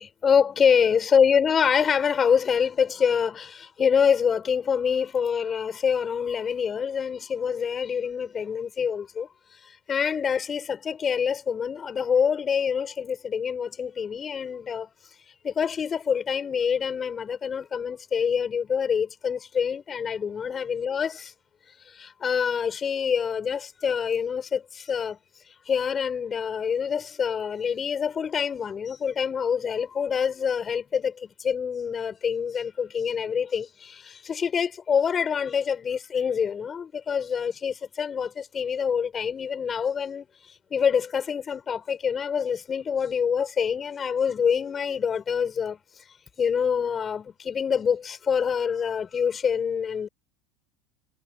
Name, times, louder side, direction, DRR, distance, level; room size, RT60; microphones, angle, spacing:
voice 1, 0.0-9.3 9.9-14.9 15.4-21.3 22.0-25.2 25.7-40.3 40.7-45.8 46.4-50.1, left 7 dB, 30° left, 7.7 m, -26 dB
hypercardioid pair, 100°, 0 cm